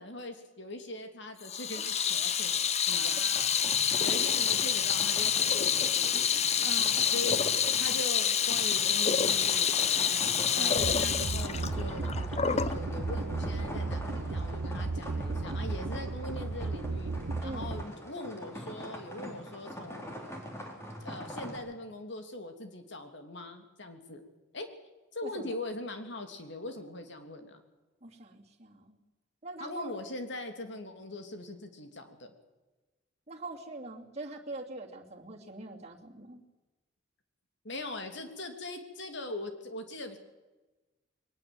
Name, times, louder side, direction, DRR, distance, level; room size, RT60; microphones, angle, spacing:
voice 1, 0.0-3.2 4.0-6.7 7.1-7.4 7.8-10.3 10.5-12.1 12.5-17.1 17.4-20.1 21.0-24.2 24.5-24.7 25.1-27.6 29.6-32.3 37.6-40.2, left 2 dB, 65° left, 6 dB, 3.0 m, -41 dB
Water tap faucet / Sink (filling or washing), 1.4-12.8, left 8 dB, 35° left, 0.8 m, -27 dB
voice 2, 2.9-4.2 6.6-7.2 10.5-11.3 17.4-17.7 25.2-25.5 28.0-29.0 29.4-29.9 33.3-36.4, right 2 dB, 35° right, 0 dB, 2.9 m, -44 dB
sound 1, 3.3-21.6, equal, 15° left, 3.9 m, -44 dB
sound 2, 10.8-17.8, right 3 dB, 75° right, 0.7 m, -34 dB
22.0 x 19.5 x 7.9 m, 1.2 s
head